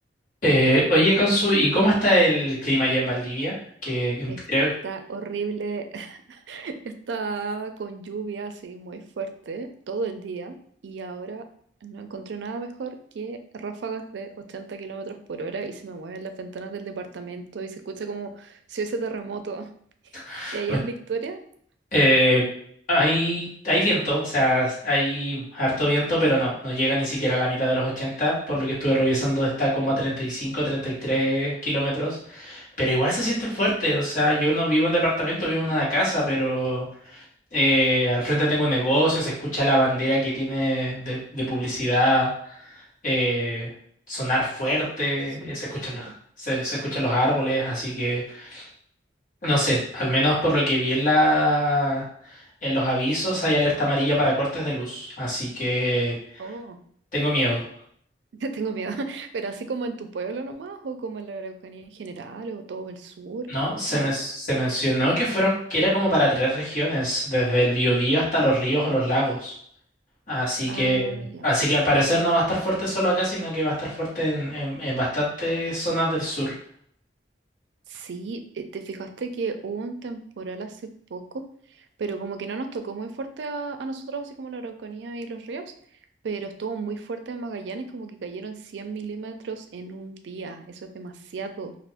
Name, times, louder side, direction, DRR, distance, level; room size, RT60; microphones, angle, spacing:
voice 1, 0.4-3.5 3.8-4.7 20.1-20.8 21.9-22.4 22.9-36.9 37.1-37.2 37.5-42.7 43.0-43.7 44.1-46.1 46.4-48.7 49.4-56.4 57.1-57.6 63.5-69.5 70.3-76.5, equal, 45° left, -6 dB, 1.5 m, -23 dB
voice 2, 4.8-10.6 10.8-11.5 11.8-19.7 20.2-21.4 45.4-45.6 45.9-46.1 56.4-56.8 58.4-63.5 63.8-64.1 70.7-71.5 77.9-85.7 86.2-91.8, right 4 dB, 75° right, 7 dB, 0.4 m, -34 dB
2.5 x 2.5 x 3.5 m, 0.63 s
head